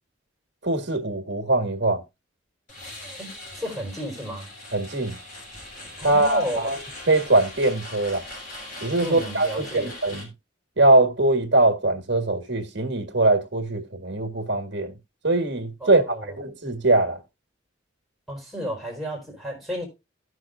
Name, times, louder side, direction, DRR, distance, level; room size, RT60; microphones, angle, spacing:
voice 1, 0.6-2.0 4.7-5.2 6.0-6.8 7.1-8.2 8.8-10.3 10.8-14.9 15.2-17.2, right 2 dB, 60° right, 1.7 m, -22 dB
sound 1, 2.7-10.2, left 1 dB, 45° left, 4.8 m, -40 dB
voice 2, 3.5-4.5 6.0-6.7 9.0-9.9 15.8-16.4 18.3-19.8, equal, ahead, 4.0 m, -32 dB
17.0 x 6.2 x 2.5 m
head